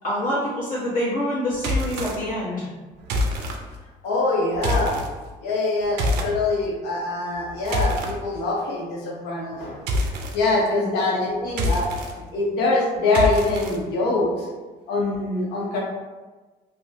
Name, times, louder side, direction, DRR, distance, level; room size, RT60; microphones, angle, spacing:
voice 1, 0.0-2.7 10.7-10.9, left 1 dB, 55° left, -10 dB, 1.3 m, -26 dB
sound 1, 1.6-2.2 3.0-3.6 4.5-5.1 6.0-6.3 7.3-8.1 9.9-10.4 11.5-12.1 13.1-13.8, left 1 dB, 85° right, 0.5 m, -25 dB
voice 2, 4.0-5.0 5.4-9.8 10.3-11.9 12.3-14.5 14.9-15.8, left 2 dB, 80° left, -3 dB, 0.8 m, -24 dB
3.1 x 2.1 x 2.7 m, 1.3 s
cardioid pair, 110°, 17 cm